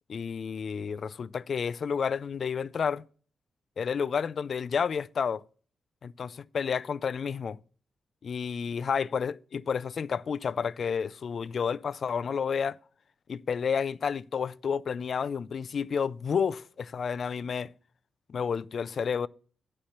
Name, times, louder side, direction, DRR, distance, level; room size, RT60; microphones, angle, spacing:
voice 1, 0.1-3.0 3.8-5.4 6.0-7.6 8.2-12.8 13.3-17.7 18.3-19.3, left 6 dB, 45° left, 0.3 m, -30 dB
10.5 x 4.3 x 6.5 m
wide cardioid pair, 175°, 0 cm